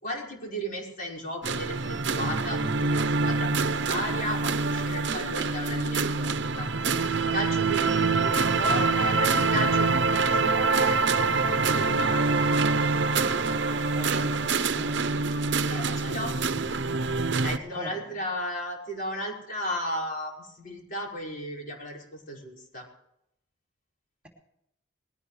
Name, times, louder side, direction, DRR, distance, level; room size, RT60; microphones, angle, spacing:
voice 1, 0.0-6.7 7.3-11.0 11.5-12.3 15.7-16.3 17.4-22.9, equal, 45° left, -1 dB, 5.2 m, -35 dB
sound 1, 1.4-17.6, right 4 dB, 65° right, 0.8 m, -25 dB
voice 2, 13.9-15.2 17.5-18.2, equal, 5° right, -1 dB, 3.1 m, -41 dB
21.5 x 17.5 x 3.3 m, 0.79 s
head